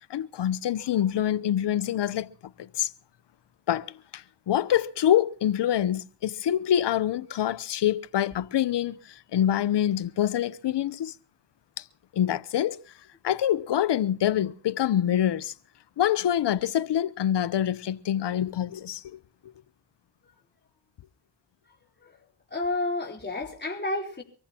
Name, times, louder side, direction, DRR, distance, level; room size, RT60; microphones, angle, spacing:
voice 1, 0.1-2.3 2.6-2.9 3.7-11.1 11.8-11.9 12.1-12.8 13.2-15.5 16.0-19.2, left 11 dB, 55° left, 0.9 m, -26 dB
voice 2, 22.5-24.2, left 2 dB, 20° left, 4.4 m, -30 dB
24.5 x 14.5 x 3.0 m
supercardioid pair, 50°, 49 cm